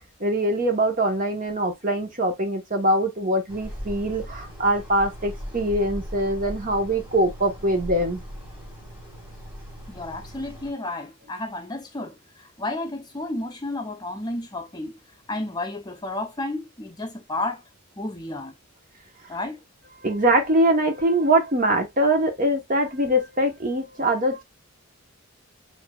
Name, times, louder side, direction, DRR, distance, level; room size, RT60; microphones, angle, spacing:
voice 1, 0.2-8.2 20.0-24.4, right 1 dB, 40° right, 1.0 m, -23 dB
sound 1, 3.5-10.7, equal, 10° right, 1.8 m, -38 dB
voice 2, 9.9-14.9 15.3-17.6 18.0-18.5 19.3-19.6, left 2 dB, 20° left, 0.6 m, -32 dB
6.5 x 2.7 x 2.3 m
head